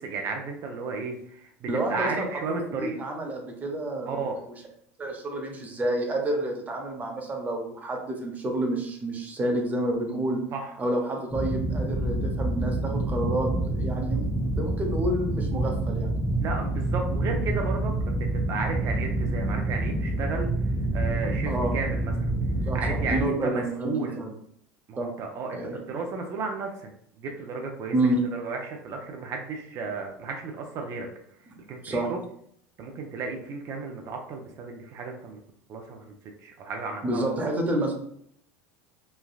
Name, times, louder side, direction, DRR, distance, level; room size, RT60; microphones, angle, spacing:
voice 1, 0.0-3.0 4.1-4.4 10.5-10.7 16.4-22.3 22.7-24.2 24.9-26.9 27.1-31.1 31.7-32.2 32.8-35.4 35.7-36.1 36.4-37.4, right 4 dB, 45° right, 2 dB, 0.5 m, -34 dB
voice 2, 1.7-2.2 2.8-4.2 5.0-10.4 10.8-13.5 13.8-16.1 21.5-21.7 22.7-22.8 23.1-24.3 25.0-25.1 25.5-25.8 27.9-28.2 31.8-32.1 37.0-37.9, right 1 dB, 25° right, 2 dB, 0.8 m, -29 dB
sound 1, 11.3-23.2, right 2 dB, 5° left, 0.7 m, -27 dB
3.2 x 2.2 x 2.3 m, 0.67 s
hypercardioid pair, 95°, 7 cm